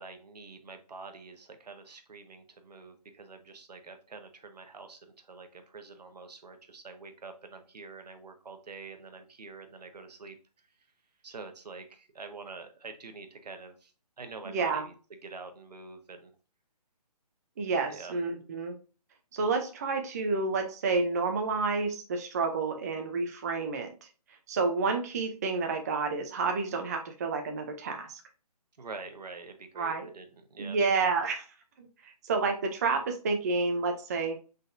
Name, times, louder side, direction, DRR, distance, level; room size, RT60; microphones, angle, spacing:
voice 1, 0.0-10.4 11.2-13.9 14.2-14.9 15.2-16.3 17.9-18.1 28.8-30.8, right 4 dB, 85° right, 7 dB, 1.0 m, -46 dB
voice 2, 14.4-14.9 17.6-18.8 19.3-24.1 24.5-28.2 29.8-30.1 30.6-31.5 31.8-34.4, right 4 dB, 25° right, 4 dB, 0.4 m, -30 dB
4.0 x 3.8 x 2.5 m, 0.35 s
hypercardioid pair, 160°, 20 cm